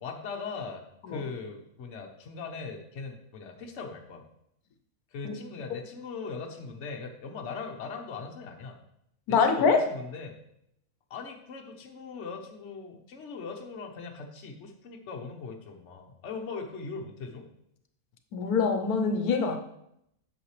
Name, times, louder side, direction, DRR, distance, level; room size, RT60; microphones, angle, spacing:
voice 1, 0.0-4.3 5.1-8.8 9.3-10.4 11.1-17.5, left 4 dB, 55° left, 1.2 m, -40 dB
voice 2, 9.3-9.8 18.3-19.6, left 5 dB, 85° left, 1.2 m, -24 dB
8.5 x 6.6 x 3.2 m
omnidirectional pair, 1.6 m